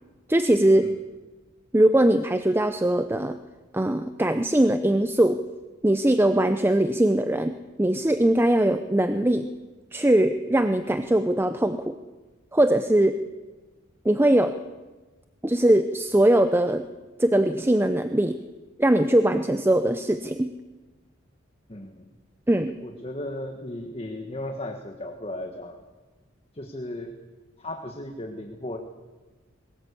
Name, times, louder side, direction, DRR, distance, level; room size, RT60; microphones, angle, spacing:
voice 1, 0.3-0.9 1.7-3.4 3.7-5.4 5.8-9.5 9.9-12.0 12.5-13.2 14.0-14.6 15.4-16.9 17.2-18.4 18.8-20.5 22.5-22.7, right 1 dB, 10° right, 10 dB, 0.6 m, -21 dB
voice 2, 21.7-22.0 22.8-25.8 26.5-27.1 27.6-28.8, left 1 dB, 30° left, 3 dB, 1.5 m, -35 dB
21.5 x 19.0 x 8.4 m, 1.3 s
head